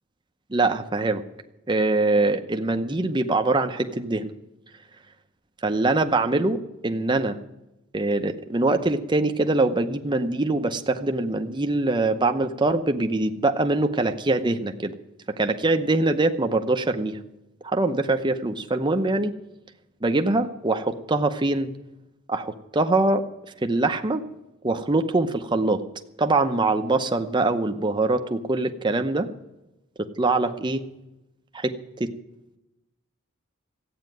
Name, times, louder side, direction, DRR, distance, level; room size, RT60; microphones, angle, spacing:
voice 1, 0.5-1.2 1.7-4.3 5.6-7.4 7.9-14.9 15.4-17.2 17.6-19.3 20.0-21.7 22.3-23.2 23.6-24.2 24.6-25.8 26.2-29.3 30.0-30.8 31.5-32.1, right 2 dB, 20° right, 6 dB, 0.8 m, -23 dB
14.0 x 8.7 x 9.2 m, 0.92 s
head